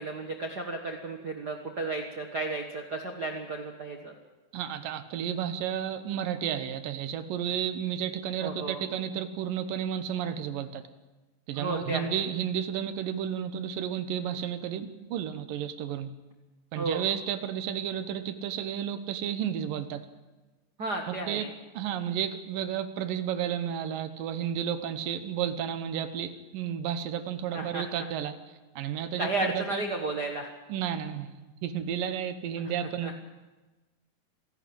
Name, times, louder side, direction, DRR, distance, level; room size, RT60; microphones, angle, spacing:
voice 1, 0.0-4.1 8.4-8.8 11.6-12.1 16.7-17.1 20.8-21.5 27.5-28.1 29.2-30.5 33.0-33.2, right 2 dB, 50° right, 3 dB, 1.2 m, -33 dB
voice 2, 4.5-10.8 11.5-16.1 16.7-20.0 21.1-21.4 21.7-28.4 28.8-29.8 30.7-33.2, right 9 dB, 80° right, 11 dB, 2.7 m, -32 dB
26.5 x 11.5 x 8.7 m, 1.2 s
omnidirectional pair, 4.0 m